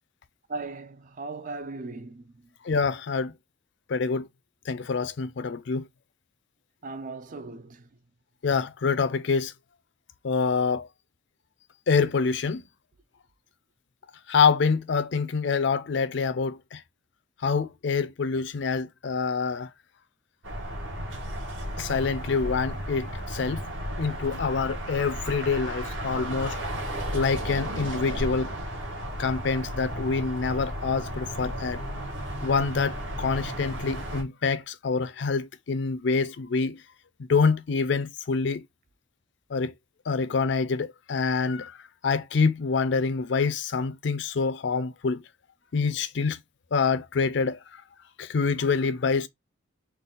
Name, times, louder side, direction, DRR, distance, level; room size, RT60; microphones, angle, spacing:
voice 1, 0.5-2.4 6.8-7.9, right 3 dB, 40° right, 0.4 m, -38 dB
voice 2, 2.6-3.3 3.9-4.3 4.7-5.9 8.4-9.5 10.2-10.9 11.9-12.6 14.3-16.8 17.4-19.7 21.8-23.6 24.0-26.6 27.1-28.5 29.2-31.8 32.4-36.8 37.3-38.6 39.5-39.7 40.1-41.8 42.0-45.2 45.7-46.4 46.7-47.8 48.2-49.3, left 5 dB, 60° left, 0.4 m, -26 dB
sound 1, 20.4-34.2, equal, 65° right, 1.4 m, -34 dB
4.0 x 2.3 x 3.7 m
head